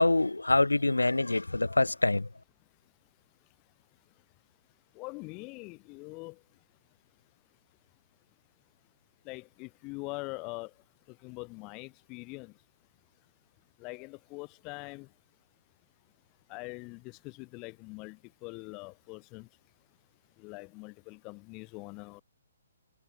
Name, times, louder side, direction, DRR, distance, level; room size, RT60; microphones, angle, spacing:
voice 1, 0.0-2.3, left 2 dB, 80° left, 0.8 m, -25 dB
voice 2, 5.0-6.3 9.3-10.7 11.2-12.5 13.8-15.1 16.5-19.5 20.4-22.2, left 28 dB, 25° left, 2.6 m, -43 dB
figure-of-eight pair, 130°, 0 cm